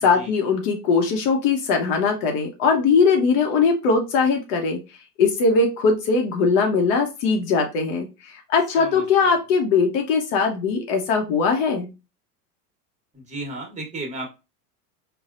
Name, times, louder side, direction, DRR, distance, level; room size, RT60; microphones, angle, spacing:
voice 1, 0.0-4.8 5.2-8.1 8.5-11.9, left 5 dB, 55° left, 3 dB, 1.0 m, -20 dB
voice 2, 8.8-9.4 13.1-14.3, right 2 dB, 15° right, 1 dB, 1.3 m, -34 dB
4.0 x 2.4 x 2.5 m, 0.27 s
hypercardioid pair, 100°, 47 cm